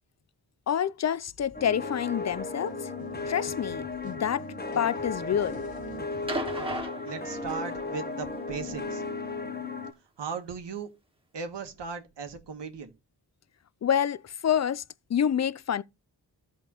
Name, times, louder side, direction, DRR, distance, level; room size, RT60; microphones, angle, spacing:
voice 1, 0.7-2.8 3.3-4.4 4.7-5.6 13.8-14.8 15.1-15.8, left 9 dB, 40° left, 0.5 m, -27 dB
sound 1, 1.3-6.8, right 1 dB, 60° left, 2.3 m, -50 dB
sound 2, 1.5-9.9, left 3 dB, 25° left, 1.0 m, -35 dB
sound 3, 6.3-7.9 9.2-9.3, right 2 dB, 15° right, 1.7 m, -35 dB
voice 2, 7.0-9.0 10.2-10.9 11.3-12.9, right 5 dB, 85° right, 1.5 m, -37 dB
13.5 x 5.4 x 3.0 m
cardioid pair, 55°, 41 cm